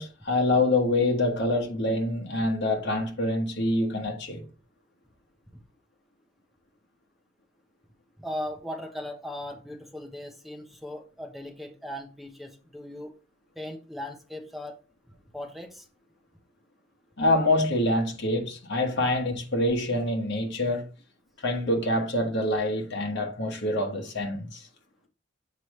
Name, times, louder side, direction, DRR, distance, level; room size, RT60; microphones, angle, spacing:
voice 1, 0.0-4.5 17.2-20.9 21.4-24.7, left 1 dB, 60° left, 1.4 m, -26 dB
voice 2, 8.2-13.2 13.5-14.8 15.3-15.9, left 1 dB, ahead, 0.9 m, -38 dB
7.4 x 4.9 x 3.1 m
head